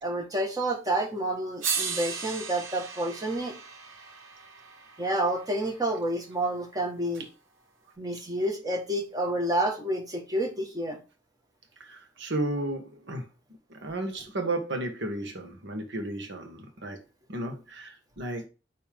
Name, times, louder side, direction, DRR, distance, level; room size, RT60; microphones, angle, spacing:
voice 1, 0.0-3.5 5.0-7.2 8.0-11.0, right 1 dB, 20° right, 1.7 m, -29 dB
sound 1, 1.0-1.1 1.6-5.8 7.1-7.2, right 6 dB, 90° right, 1.6 m, -36 dB
voice 2, 11.8-13.3 13.7-17.0 17.3-18.5, right 2 dB, 65° right, 1.7 m, -33 dB
9.6 x 3.4 x 3.7 m
head